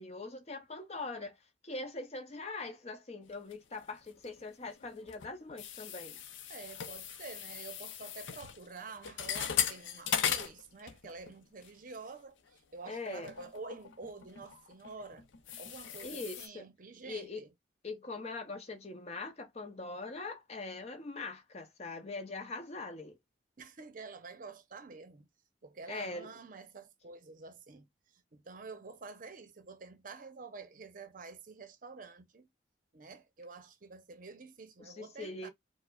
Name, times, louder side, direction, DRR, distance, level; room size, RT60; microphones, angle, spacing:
voice 1, 0.0-1.4 1.6-6.2 12.9-13.3 16.0-16.7 17.0-17.4 17.8-23.2 25.9-26.3 34.8-35.5, left 3 dB, 35° left, 0.7 m, -42 dB
sound 1, 3.5-4.4 4.7-11.3 11.6-11.9 12.5-12.6 13.1-16.5, left 8 dB, 80° left, 0.5 m, -38 dB
voice 2, 6.5-15.3 15.6-17.5 23.6-25.3 25.6-27.9 28.1-32.5 32.9-35.5, right 4 dB, 45° right, 0.7 m, -48 dB
4.6 x 2.0 x 2.3 m
head